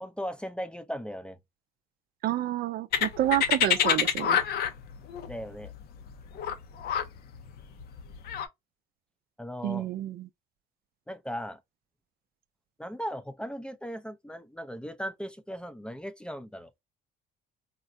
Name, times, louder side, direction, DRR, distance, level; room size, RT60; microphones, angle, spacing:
voice 1, 0.0-1.4 5.3-5.7 9.4-9.9 11.1-11.6 12.8-16.8, equal, 5° left, 0.4 m, -37 dB
voice 2, 2.2-4.4 9.6-10.3, right 13 dB, 65° right, 0.4 m, -29 dB
sound 1, 2.9-8.5, left 8 dB, 70° left, 0.6 m, -27 dB
3.7 x 2.1 x 2.5 m
cardioid pair, 110°, 17 cm